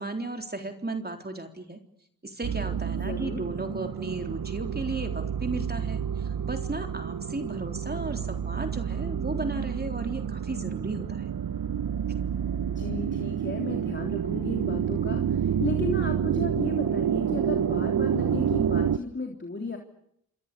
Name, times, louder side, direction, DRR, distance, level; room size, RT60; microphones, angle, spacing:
voice 1, 0.0-1.8 2.2-11.3, right 2 dB, 25° right, 5 dB, 3.7 m, -35 dB
sound 1, 2.4-19.0, right 8 dB, 70° right, 1.0 m, -29 dB
voice 2, 3.0-3.4 12.6-19.8, left 2 dB, 30° left, 3 dB, 3.5 m, -34 dB
27.0 x 23.5 x 6.9 m, 0.73 s
cardioid pair, 55°, 36 cm